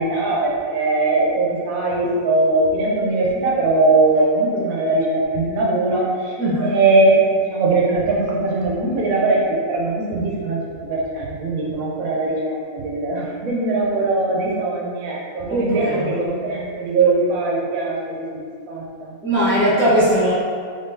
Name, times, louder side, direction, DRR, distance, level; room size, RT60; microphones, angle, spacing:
voice 1, 0.0-19.1, right 2 dB, 75° right, -3 dB, 1.1 m, -20 dB
voice 2, 6.4-6.8 15.5-16.1 19.2-20.3, equal, 10° left, -10 dB, 0.6 m, -19 dB
3.6 x 3.5 x 2.6 m, 2.1 s
omnidirectional pair, 1.5 m